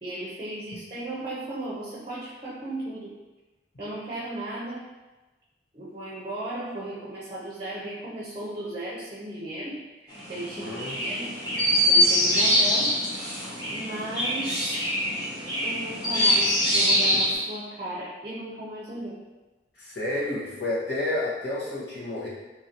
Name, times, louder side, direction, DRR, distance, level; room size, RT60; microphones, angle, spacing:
voice 1, 0.0-3.1 3.8-4.8 5.7-11.3 11.8-13.0 13.7-14.6 15.6-19.2, right 1 dB, 30° right, -5 dB, 0.6 m, -35 dB
Chirp tweet, 10.1-17.3, equal, 25° left, 1.5 m, -24 dB
voice 2, 10.6-11.0 19.8-22.3, left 1 dB, 70° left, -8 dB, 1.2 m, -30 dB
3.9 x 2.7 x 2.9 m, 1.2 s
head